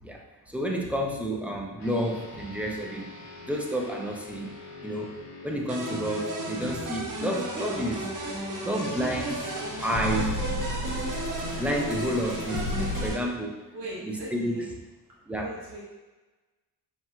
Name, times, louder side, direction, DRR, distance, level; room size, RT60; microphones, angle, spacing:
voice 1, 0.0-3.1 3.5-4.5 4.8-8.1 8.6-9.5 9.8-11.0 11.5-13.5 14.0-14.7 15.3-15.5, equal, 5° right, 0 dB, 0.7 m, -30 dB
sound 1, 1.8-11.5, left 3 dB, 45° left, 0.9 m, -47 dB
sound 2, 5.7-13.2, right 2 dB, 50° right, 0.9 m, -34 dB
sound 3, 7.5-13.1, left 2 dB, 80° left, 0.9 m, -34 dB
voice 2, 13.7-14.7 15.3-15.8, right 1 dB, 80° right, -6 dB, 1.1 m, -39 dB
5.3 x 2.9 x 2.4 m, 1.2 s
cardioid pair, 65°, 40 cm